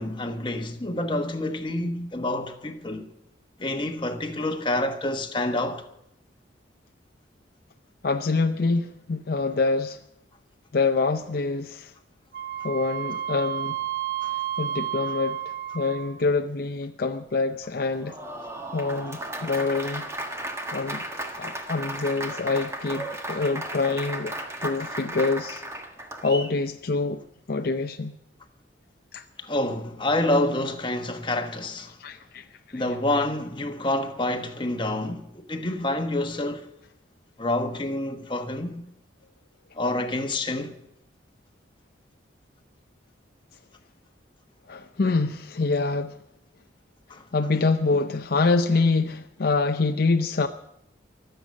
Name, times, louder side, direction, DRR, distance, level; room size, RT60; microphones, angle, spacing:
voice 1, 0.0-3.0 3.6-5.8 14.2-14.3 29.4-32.0 32.7-36.7 37.4-38.8 39.7-40.8 47.1-47.2, left 1 dB, 25° left, 1.2 m, -28 dB
voice 2, 8.0-10.0 10.7-11.9 12.6-13.8 14.6-18.2 18.7-20.1 20.7-21.0 21.4-24.3 24.6-25.6 26.2-28.1 29.1-29.2 32.0-32.8 44.7-46.2 47.3-50.5, left 3 dB, 55° left, 0.6 m, -26 dB
Wind instrument woodwind instrument, 12.3-16.2, right 10 dB, 60° right, 0.7 m, -31 dB
Applause, 17.8-26.5, right 1 dB, 15° right, 1.5 m, -35 dB
23.5 x 8.0 x 6.4 m
head